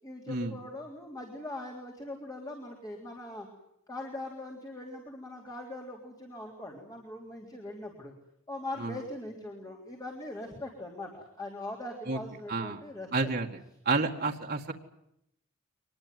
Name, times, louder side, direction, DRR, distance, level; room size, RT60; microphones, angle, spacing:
voice 1, 0.0-3.5 3.9-8.1 8.5-13.3 14.2-14.3, left 1 dB, 20° left, 0 dB, 3.6 m, -41 dB
voice 2, 12.5-12.8 13.1-13.5 13.9-14.7, right 3 dB, 45° right, 1 dB, 1.9 m, -29 dB
24.5 x 20.5 x 9.4 m, 0.78 s
head